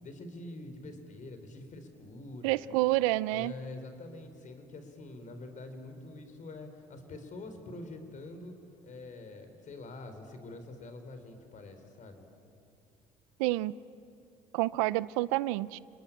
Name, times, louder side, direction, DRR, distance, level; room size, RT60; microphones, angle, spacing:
voice 1, 0.0-2.8 3.3-8.6 8.8-12.2, left 2 dB, 50° left, 7 dB, 4.4 m, -45 dB
voice 2, 2.4-3.5 13.4-13.8 14.5-15.8, right 18 dB, 90° right, 19 dB, 0.5 m, -28 dB
29.5 x 20.5 x 8.8 m, 2.7 s
supercardioid pair, 75°, 17 cm